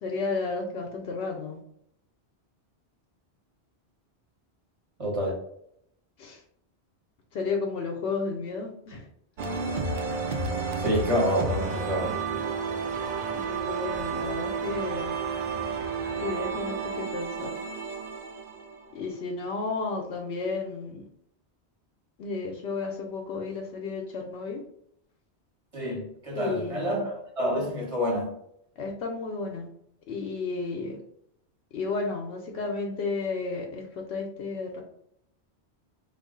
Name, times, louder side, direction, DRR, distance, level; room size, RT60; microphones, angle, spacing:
voice 1, 0.0-1.6 6.2-6.4 7.3-9.1 13.3-15.1 16.2-17.5 18.9-21.0 22.2-24.6 26.3-26.9 28.8-29.7 30.1-31.0 31.7-34.8, left 4 dB, 75° left, 0 dB, 0.8 m, -32 dB
voice 2, 5.0-5.4 10.8-12.1 25.7-28.3, equal, 30° right, -2 dB, 1.1 m, -28 dB
sound 1, 9.4-19.2, right 4 dB, 60° right, 0.6 m, -31 dB
3.1 x 2.4 x 3.7 m, 0.72 s
omnidirectional pair, 1.1 m